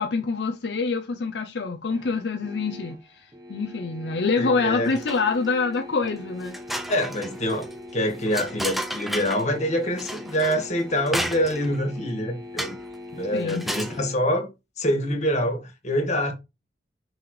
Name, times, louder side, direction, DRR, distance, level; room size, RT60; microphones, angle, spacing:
voice 1, 0.0-6.6 13.3-13.7, left 4 dB, 70° left, 0.6 m, -26 dB
sound 1, 1.9-14.1, left 2 dB, 20° right, 1.1 m, -42 dB
voice 2, 4.4-4.9 6.9-7.7 7.9-12.8 13.1-14.5 14.8-16.3, equal, 40° left, 1.8 m, -25 dB
sound 2, 4.8-5.5 5.9-6.0 6.4-9.5 10.0-11.8 12.6-12.9 13.4-14.0, equal, ahead, 0.5 m, -33 dB
5.9 x 5.4 x 3.2 m
head